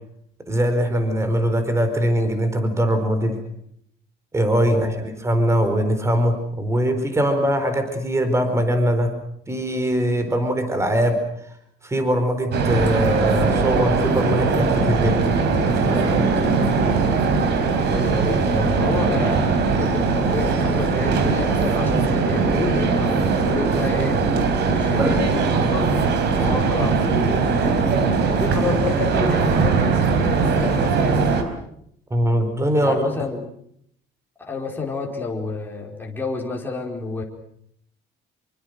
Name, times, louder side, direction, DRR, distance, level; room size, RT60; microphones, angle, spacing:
voice 1, 0.5-3.4 4.3-9.1 9.5-11.2 11.8-15.3 15.6-16.3 20.2-20.4 25.0-25.3 32.1-33.1, equal, 15° right, 8 dB, 4.3 m, -21 dB
voice 2, 4.6-5.0 17.8-24.2 24.6-26.0 26.4-27.0 27.5-28.0 28.4-31.3 32.8-33.5 34.4-37.2, left 3 dB, 10° left, -1 dB, 4.7 m, -29 dB
sound 1, 12.5-31.4, right 4 dB, 60° right, 4.4 m, -20 dB
27.0 x 24.0 x 6.6 m, 0.70 s
cardioid pair, 150°, 20 cm